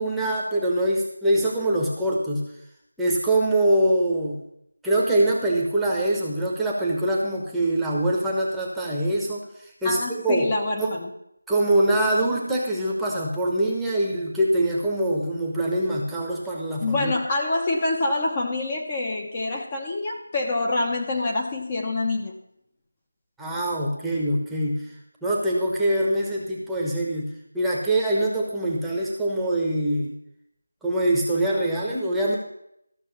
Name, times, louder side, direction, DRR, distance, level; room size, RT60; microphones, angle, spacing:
voice 1, 0.0-2.5 3.0-4.4 4.8-10.5 10.8-11.0 11.5-17.1 23.4-24.9 25.2-30.1 30.8-32.4, right 1 dB, ahead, -4 dB, 1.0 m, -24 dB
voice 2, 9.8-11.1 16.8-22.3, left 2 dB, 20° left, 0 dB, 0.9 m, -26 dB
13.5 x 6.1 x 7.1 m, 0.78 s
figure-of-eight pair, 170°, 0 cm